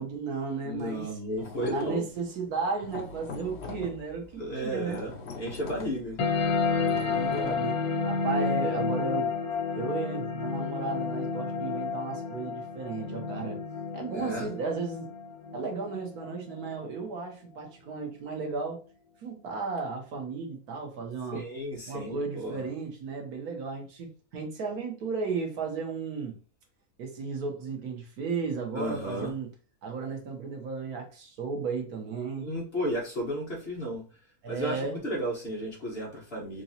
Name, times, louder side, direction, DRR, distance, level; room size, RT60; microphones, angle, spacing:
voice 1, 0.0-1.1 1.7-5.1 6.9-7.8 8.0-9.3 9.7-13.6 13.9-15.1 15.5-18.8 19.2-21.4 21.9-26.4 27.0-29.5 29.8-32.5 34.4-35.0, right 4 dB, 75° right, 1.4 m, -34 dB
voice 2, 0.6-2.1 4.4-6.2 14.1-14.5 21.3-22.6 28.7-29.3 32.4-34.0 34.5-36.6, equal, 40° left, 1.3 m, -33 dB
sound 1, 1.4-2.2 2.5-7.5, left 4 dB, 60° left, 0.7 m, -42 dB
sound 2, 6.2-17.2, left 5 dB, 90° left, 1.4 m, -31 dB
3.8 x 3.0 x 2.7 m
omnidirectional pair, 1.6 m